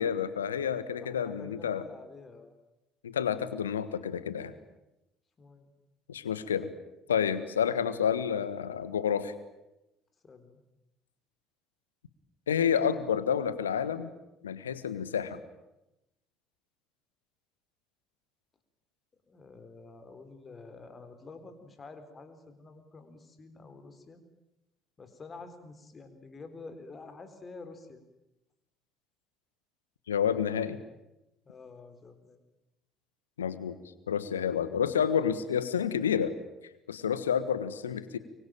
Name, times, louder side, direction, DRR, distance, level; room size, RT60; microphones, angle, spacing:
voice 1, 0.0-1.8 3.0-4.5 6.1-6.7 7.1-9.3 12.5-14.1 14.4-15.4 30.1-30.8 33.4-33.8 34.1-36.3 36.9-38.2, left 8 dB, 75° left, 15 dB, 1.4 m, -29 dB
voice 2, 1.0-2.5 5.4-5.7 10.2-10.6 19.3-24.2 25.0-28.0 31.4-32.4, left 3 dB, 30° left, 9 dB, 4.0 m, -48 dB
25.0 x 24.0 x 9.0 m, 0.92 s
figure-of-eight pair, 55°, 0 cm